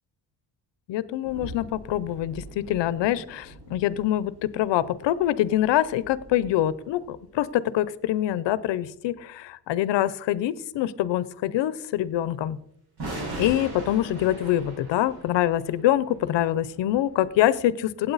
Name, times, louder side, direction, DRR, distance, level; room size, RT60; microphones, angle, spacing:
voice 1, 0.9-12.6 13.4-18.1, left 13 dB, 80° left, 18 dB, 0.7 m, -25 dB
sound 1, 1.2-7.5 13.0-17.6, right 1 dB, 60° right, 5.6 m, -41 dB
16.0 x 8.8 x 4.0 m, 0.72 s
cardioid pair, 165°, 42 cm